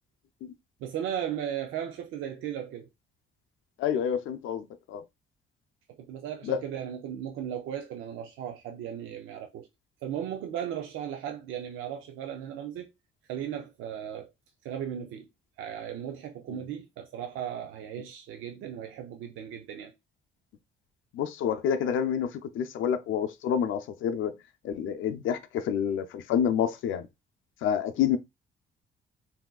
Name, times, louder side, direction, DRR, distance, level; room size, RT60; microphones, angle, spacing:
voice 1, 0.8-2.9 5.9-9.7 10.0-12.9 13.3-14.3 14.6-15.3 15.6-19.9, right 9 dB, 90° right, 0.5 m, -36 dB
voice 2, 3.8-5.0 6.5-6.6 21.1-22.3 22.5-24.3 24.6-27.0 27.6-28.2, left 8 dB, 80° left, 0.5 m, -28 dB
3.6 x 2.7 x 2.3 m
cardioid pair, 90°, 20 cm